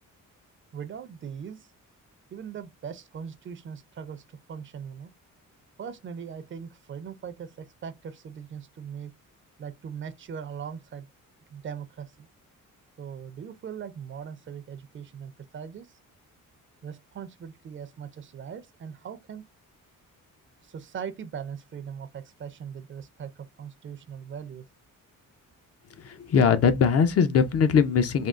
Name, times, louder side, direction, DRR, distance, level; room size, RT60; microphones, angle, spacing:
voice 1, 0.7-1.7 2.3-5.1 5.8-9.1 9.6-11.1 11.5-12.3 13.0-16.0 16.8-19.5 20.6-24.7, right 7 dB, 35° right, 0.5 m, -40 dB
voice 2, 26.0-28.3, left 6 dB, 45° left, 0.5 m, -21 dB
3.5 x 2.3 x 2.4 m
cardioid pair, 120°, 33 cm